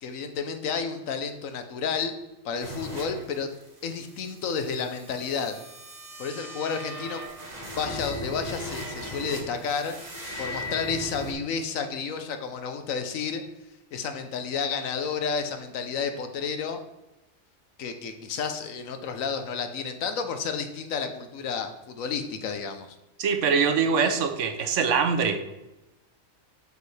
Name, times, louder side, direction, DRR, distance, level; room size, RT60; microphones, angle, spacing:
voice 1, 0.0-2.1 2.4-3.5 3.8-5.6 6.2-7.2 7.8-10.0 10.4-13.4 13.9-16.8 17.8-23.0, left 6 dB, 75° left, 8 dB, 1.1 m, -31 dB
sound 1, 2.6-11.3, equal, 30° right, 1.4 m, -38 dB
voice 2, 23.2-25.4, right 6 dB, 65° right, 7 dB, 1.0 m, -23 dB
8.0 x 5.3 x 3.2 m, 0.99 s
omnidirectional pair, 1.4 m